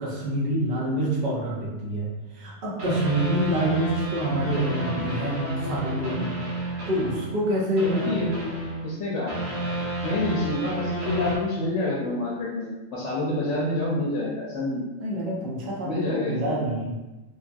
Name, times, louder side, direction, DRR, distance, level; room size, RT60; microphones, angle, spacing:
voice 1, 0.0-6.4 6.9-8.5 15.0-17.0, right 1 dB, 50° right, -5 dB, 0.7 m, -27 dB
sound 1, 2.8-7.5 7.8-11.4, right 1 dB, 90° right, 1.2 m, -31 dB
voice 2, 7.8-8.3 8.8-9.4 10.0-14.8 15.8-16.6, left 2 dB, 70° left, -5 dB, 0.8 m, -28 dB
2.8 x 2.3 x 2.5 m, 1.1 s
omnidirectional pair, 1.4 m